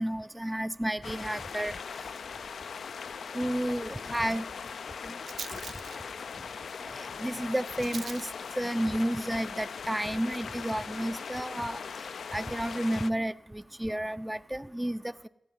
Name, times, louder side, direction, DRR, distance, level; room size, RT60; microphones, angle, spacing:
voice 1, 0.0-1.7 3.3-4.4 5.1-5.2 7.2-8.3 8.6-11.8 12.3-15.3, right 1 dB, 10° right, 13 dB, 0.4 m, -31 dB
sound 1, 1.0-13.1, left 6 dB, 90° left, 0.4 m, -40 dB
Rattle, 2.2-12.2, right 5 dB, 80° right, 0.5 m, -49 dB
voice 2, 3.8-5.9 6.9-7.7, left 4 dB, 70° left, 12 dB, 1.1 m, -55 dB
16.0 x 5.4 x 9.2 m, 0.84 s
wide cardioid pair, 75°, 0 cm